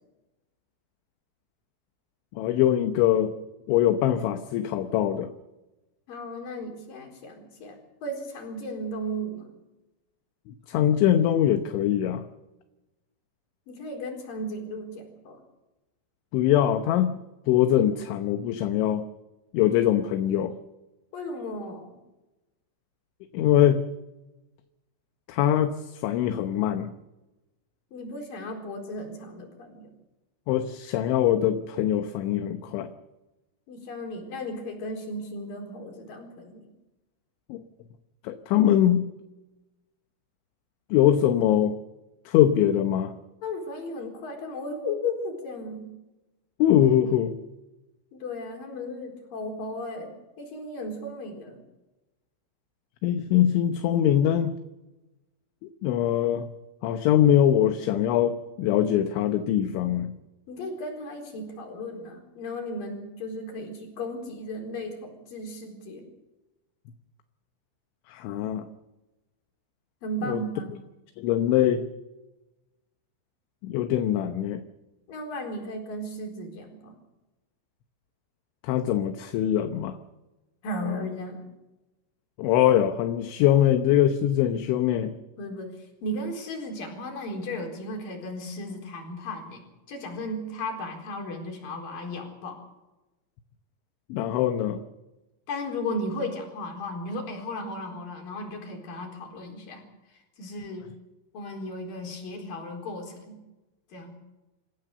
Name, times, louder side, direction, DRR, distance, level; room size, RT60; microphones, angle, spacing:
voice 1, 2.3-3.3 3.7-5.3 10.5-12.3 16.3-17.2 17.5-19.0 19.5-20.5 23.3-23.8 25.3-26.9 30.5-32.9 37.5-37.6 38.2-39.1 40.9-41.7 42.3-43.2 46.6-47.4 53.0-54.5 55.8-56.5 56.8-60.2 68.1-68.7 70.3-70.4 71.2-71.9 73.6-74.6 78.6-80.0 82.4-85.1 94.1-94.8, left 11 dB, 75° left, 7 dB, 3.2 m, -22 dB
voice 2, 6.1-9.6 13.7-15.4 21.1-22.0 27.9-29.9 33.7-36.7 43.4-45.9 48.1-50.1 50.4-51.6 60.5-66.0 70.0-70.7 75.1-77.0 80.6-81.5 85.4-89.6 89.9-92.6 95.5-99.8 100.1-100.9 101.3-103.4 103.9-104.2, left 1 dB, 45° left, 2 dB, 5.6 m, -35 dB
26.5 x 16.0 x 6.8 m, 1.0 s
omnidirectional pair, 5.9 m